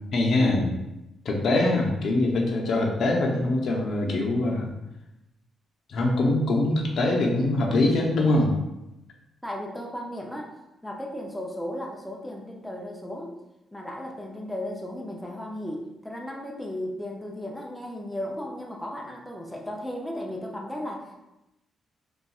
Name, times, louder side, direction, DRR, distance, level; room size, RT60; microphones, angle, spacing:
voice 1, 0.1-0.8 1.2-4.7 5.9-8.5, left 2 dB, 65° left, 0 dB, 0.6 m, -23 dB
voice 2, 9.4-10.5 10.8-13.3 13.7-21.1, left 1 dB, 5° left, -1 dB, 0.5 m, -35 dB
3.9 x 2.3 x 2.3 m, 0.93 s
cardioid pair, 90°, 0 cm